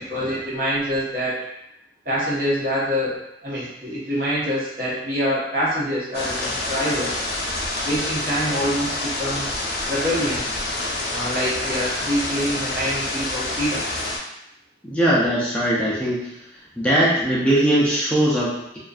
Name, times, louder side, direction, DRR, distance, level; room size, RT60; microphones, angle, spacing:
voice 1, 0.0-1.4 2.0-3.2 3.4-7.2 7.8-10.5 11.1-13.8, equal, 55° right, -8 dB, 0.9 m, -25 dB
sound 1, 6.1-14.2, left 2 dB, 65° left, 0.5 m, -27 dB
voice 2, 14.8-16.4 16.8-18.8, right 1 dB, 5° left, -7 dB, 0.4 m, -20 dB
2.5 x 2.2 x 2.3 m, 0.84 s
head